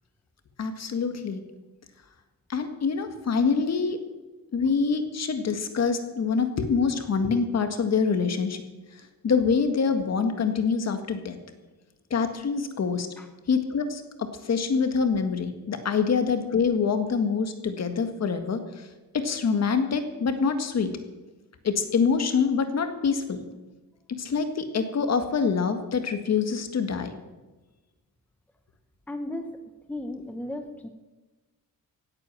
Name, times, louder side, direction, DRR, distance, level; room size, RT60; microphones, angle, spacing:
voice 1, 0.6-1.4 2.5-4.0 4.5-8.6 9.2-11.4 12.1-13.1 13.5-14.0 14.4-18.9 19.1-20.9 21.6-23.5 24.2-27.2, left 5 dB, 45° left, 7 dB, 1.8 m, -25 dB
voice 2, 29.1-29.5 29.9-30.9, left 1 dB, 5° left, 6 dB, 0.9 m, -35 dB
17.0 x 8.8 x 7.5 m, 1.2 s
wide cardioid pair, 155°, 35 cm